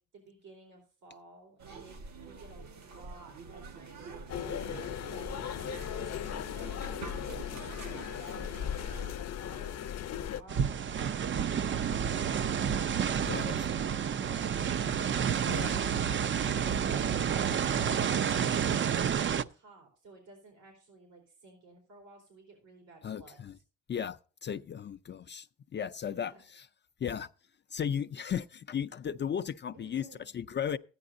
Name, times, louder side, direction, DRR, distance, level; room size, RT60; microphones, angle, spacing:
voice 1, 0.1-7.0 7.5-9.8 10.3-14.7 15.2-18.1 18.5-23.6 26.1-26.4 29.7-30.3, right 2 dB, 85° right, 3.9 m, -54 dB
sound 1, 1.6-9.1, right 4 dB, 65° right, 1.6 m, -46 dB
sound 2, 4.3-10.4, left 9 dB, 60° left, 0.8 m, -37 dB
sound 3, 10.5-19.4, right 8 dB, 40° right, 0.5 m, -29 dB
voice 2, 13.3-13.7 15.5-15.8 23.0-23.6 23.9-25.5 25.7-26.7 27.0-27.3 27.7-30.1 30.3-30.8, left 8 dB, 35° left, 0.5 m, -35 dB
14.0 x 9.7 x 2.6 m
cardioid pair, 90°, 30 cm